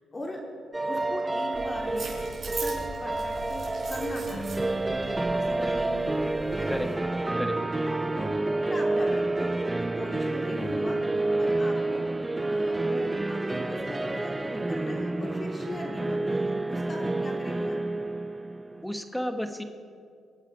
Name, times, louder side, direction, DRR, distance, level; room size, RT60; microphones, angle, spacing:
voice 1, 0.1-0.4 0.8-2.1 2.5-4.8 5.0-6.1 6.6-6.8 8.1-8.3 8.6-11.0 11.4-12.1 12.5-17.8, left 1 dB, 25° left, -1 dB, 3.3 m, -39 dB
sound 1, 0.7-18.8, right 2 dB, 15° right, 0.5 m, -29 dB
sound 2, 1.5-6.9, right 2 dB, 50° right, 4.8 m, -40 dB
voice 2, 18.8-19.6, equal, ahead, 7 dB, 1.2 m, -32 dB
24.0 x 8.9 x 4.9 m, 2.3 s
cardioid pair, 90°, 0 cm